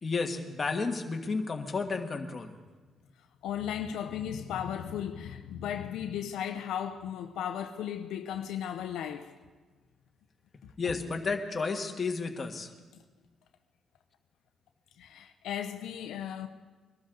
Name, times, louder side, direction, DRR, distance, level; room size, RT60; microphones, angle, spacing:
voice 1, 0.0-2.5 10.8-12.7, left 4 dB, 30° left, 1.7 m, -32 dB
voice 2, 3.4-9.3 10.6-10.7 15.0-16.5, left 9 dB, 85° left, 0.8 m, -36 dB
22.0 x 12.5 x 4.0 m
cardioid pair, 95°, 0 cm